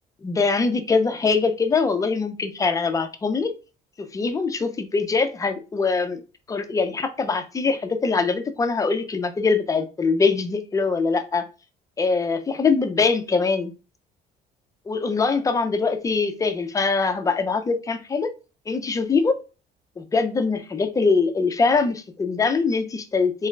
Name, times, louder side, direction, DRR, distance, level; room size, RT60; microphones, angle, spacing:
voice 1, 0.2-3.5 4.0-6.2 6.5-11.4 12.0-13.7 14.9-18.3 18.7-19.4 20.0-23.5, left 4 dB, 20° left, 0.5 m, -23 dB
3.8 x 2.2 x 3.2 m
cardioid pair, 110°, 17 cm